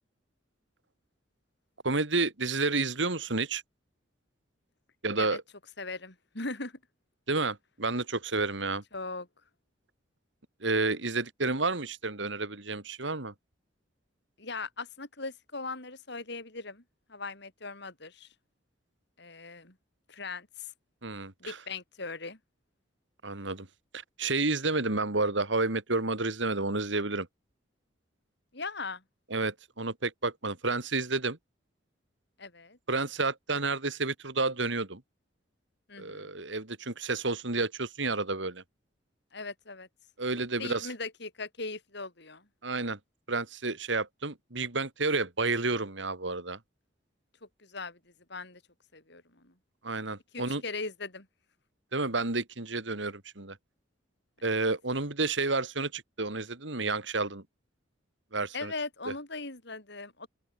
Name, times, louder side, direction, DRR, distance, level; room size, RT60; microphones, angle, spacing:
voice 1, 1.8-3.6 5.0-5.4 7.3-8.8 10.6-13.3 21.0-21.6 23.2-23.7 23.9-27.3 29.3-31.4 32.9-35.0 36.0-38.6 40.2-40.9 42.6-43.0 43.3-46.6 49.8-50.6 51.9-53.6 54.4-57.4 58.3-58.7, right 3 dB, 70° right, 2.8 m, -30 dB
voice 2, 5.8-6.8 8.9-9.3 14.4-16.8 17.1-18.3 19.2-19.8 20.1-20.7 21.4-22.4 28.5-29.0 32.4-32.8 35.9-36.4 39.3-39.9 40.6-42.5 47.6-48.6 48.9-49.5 50.3-51.3 58.5-60.3, left 3 dB, 60° left, 5.6 m, -39 dB
open air
head